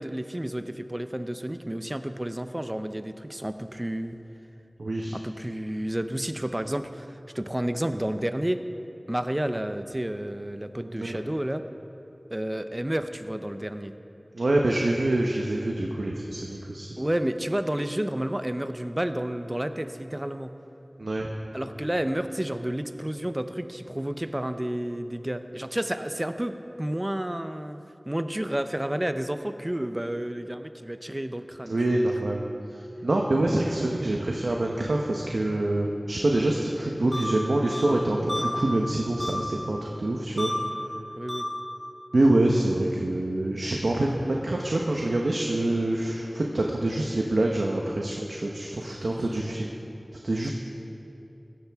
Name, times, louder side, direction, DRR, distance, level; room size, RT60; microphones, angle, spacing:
voice 1, 0.0-4.2 5.1-8.6 9.1-11.6 12.3-13.9 17.0-20.5 21.5-32.0 41.2-41.5 49.0-49.3 50.4-50.5, right 1 dB, 25° right, 9 dB, 0.6 m, -31 dB
voice 2, 4.8-5.2 10.9-11.2 14.3-16.9 21.0-21.3 31.7-40.5 42.1-49.7 50.2-50.5, right 1 dB, 90° right, 0 dB, 0.9 m, -26 dB
sound 1, 37.1-37.2 37.7-37.8 38.3-38.4 39.2-39.3 40.4-40.5 41.3-41.4, left 1 dB, 25° left, 2.6 m, -31 dB
15.5 x 13.5 x 3.5 m, 2.8 s
wide cardioid pair, 45°, 0 cm